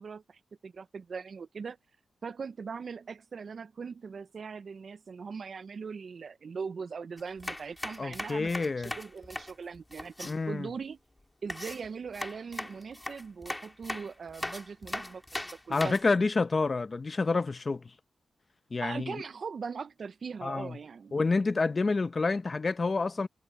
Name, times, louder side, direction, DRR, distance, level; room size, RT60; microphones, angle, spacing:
voice 1, 0.0-1.8 2.2-11.0 11.4-15.9 18.8-21.2, right 5 dB, 50° right, 0.5 m, -40 dB
sound 1, 7.2-10.3 11.5-16.1, left 1 dB, 10° left, 2.5 m, -39 dB
voice 2, 8.0-8.9 10.2-10.7 15.7-17.9 18.7-19.2 20.4-20.8 21.1-23.3, left 3 dB, 30° left, 0.6 m, -28 dB
wide cardioid pair, 150°, 0 cm